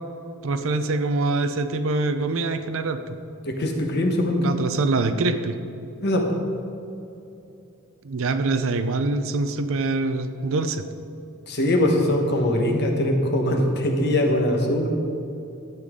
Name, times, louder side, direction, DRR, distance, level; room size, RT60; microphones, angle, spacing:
voice 1, 0.4-3.2 4.4-5.6 8.0-10.8, right 3 dB, 65° right, 10 dB, 0.6 m, -24 dB
voice 2, 3.4-4.5 6.0-6.4 11.5-14.9, left 1 dB, 50° left, 2 dB, 1.2 m, -22 dB
12.0 x 8.2 x 3.7 m, 2.8 s
head